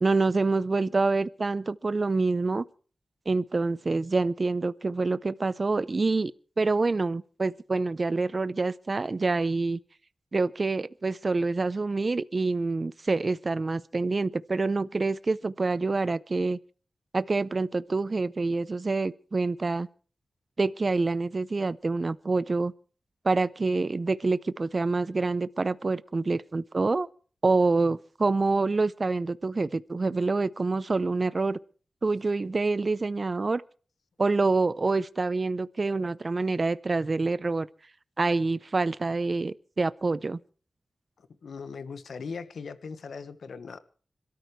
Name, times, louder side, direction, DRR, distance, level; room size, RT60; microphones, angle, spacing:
voice 1, 0.0-2.6 3.3-6.3 6.6-9.8 10.3-16.6 17.1-19.9 20.6-22.7 23.2-27.1 27.4-31.6 32.0-33.6 34.2-37.7 38.2-40.4, right 3 dB, 40° right, 0.6 m, -26 dB
voice 2, 41.2-43.8, left 5 dB, 90° left, 1.3 m, -39 dB
27.0 x 13.5 x 3.2 m
wide cardioid pair, 100°, 0 cm